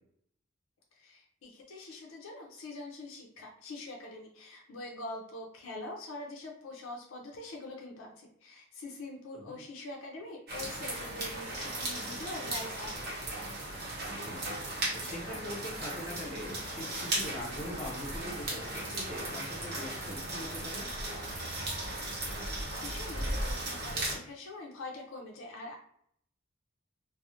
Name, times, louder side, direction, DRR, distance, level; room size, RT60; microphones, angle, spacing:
voice 1, 1.0-13.1 22.2-25.8, left 2 dB, 80° left, 0 dB, 0.5 m, -44 dB
sound 1, 10.5-24.2, right 1 dB, 50° right, 0.8 m, -36 dB
voice 2, 14.1-14.4 14.9-20.9, left 1 dB, 35° left, -4 dB, 0.8 m, -42 dB
2.3 x 2.0 x 2.7 m, 0.67 s
head